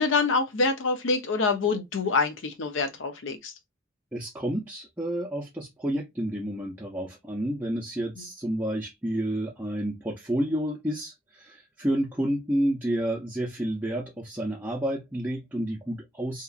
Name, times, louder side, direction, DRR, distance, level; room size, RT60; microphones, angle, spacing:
voice 1, 0.0-3.5, left 4 dB, 70° left, 0.6 m, -26 dB
voice 2, 4.1-16.4, right 1 dB, 10° right, 0.5 m, -30 dB
2.8 x 2.4 x 2.3 m
head